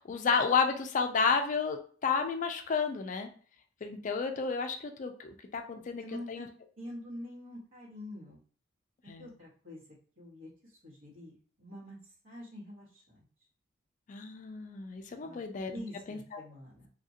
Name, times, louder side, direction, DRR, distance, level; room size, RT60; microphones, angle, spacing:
voice 1, 0.0-3.3 3.8-6.5 9.1-9.3 14.1-15.7 16.1-16.4, left 5 dB, 40° left, 6 dB, 0.3 m, -31 dB
voice 2, 6.0-6.5 6.8-8.4 9.0-9.8 10.2-10.5 10.8-12.0 12.2-13.2 15.2-15.4 15.7-16.9, left 1 dB, 75° right, -7 dB, 1.5 m, -46 dB
2.8 x 2.5 x 2.7 m, 0.44 s
head